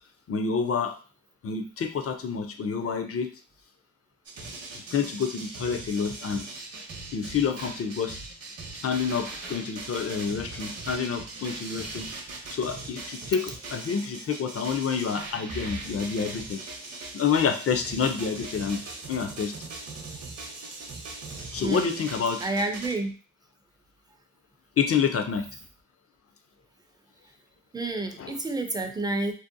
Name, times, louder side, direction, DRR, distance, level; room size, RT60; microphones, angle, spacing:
voice 1, 0.3-1.0 1.4-3.3 4.7-6.5 7.1-8.2 8.8-12.1 12.5-16.6 17.1-18.8 19.1-19.6 21.5-22.4 24.8-25.6 28.2-28.4, left 6 dB, 45° left, 7 dB, 0.5 m, -28 dB
sound 1, 4.3-22.9, right 3 dB, 50° right, 0.7 m, -40 dB
voice 2, 21.6-22.0 22.4-23.2 27.7-29.3, right 2 dB, 10° right, 5 dB, 0.4 m, -29 dB
2.7 x 2.1 x 2.6 m, 0.38 s
cardioid pair, 65°, 33 cm